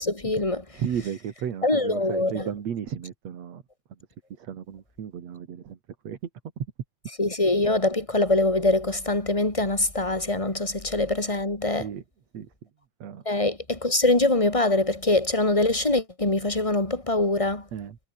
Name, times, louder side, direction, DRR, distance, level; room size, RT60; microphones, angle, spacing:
voice 1, 0.0-0.6 1.6-2.5 7.2-11.9 13.3-17.6, left 2 dB, 10° left, 3.5 m, -23 dB
voice 2, 0.7-3.6 4.4-5.8 6.0-6.2 11.7-12.0 12.3-12.5 13.0-13.2 17.7-18.0, right 8 dB, 60° right, 3.2 m, -34 dB
omnidirectional pair, 3.5 m